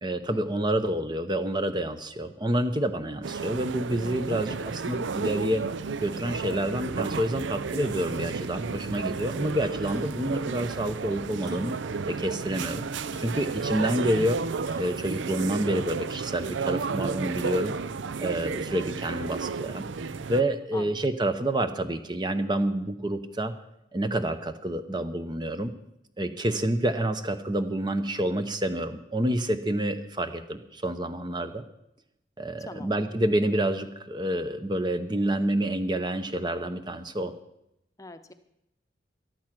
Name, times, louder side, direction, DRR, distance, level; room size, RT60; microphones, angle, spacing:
voice 1, 0.0-5.6 6.0-11.8 12.0-12.8 13.2-14.4 14.7-17.7 18.2-19.9 20.3-23.5 23.9-25.7 26.2-31.6 32.4-37.3, right 1 dB, 25° right, 9 dB, 0.8 m, -28 dB
sound 1, 1.6-1.7 2.2-2.3 2.7-2.8 3.9-4.0 4.5-4.6 5.0-5.1 5.6-5.7 6.8-7.0 7.3-7.4 7.6-16.8, right 1 dB, 50° right, 3.9 m, -49 dB
sound 2, 3.2-20.4, right 5 dB, 90° right, 0.5 m, -32 dB
voice 2, 38.0-38.3, left 2 dB, 20° left, 10 dB, 0.8 m, -42 dB
13.5 x 12.0 x 6.0 m, 0.81 s
head